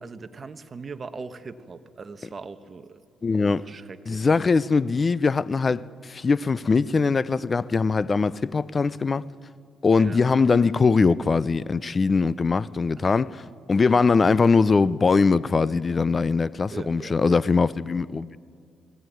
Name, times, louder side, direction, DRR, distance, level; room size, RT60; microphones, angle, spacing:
voice 1, 0.0-3.0 3.3-4.3 10.0-10.2 13.0-13.2 16.7-17.4, right 4 dB, 35° right, 1.1 m, -40 dB
voice 2, 3.2-3.6 4.1-9.3 9.8-13.4 13.7-18.4, left 4 dB, 35° left, 0.5 m, -21 dB
20.5 x 15.5 x 9.2 m
cardioid pair, 90°, 0 cm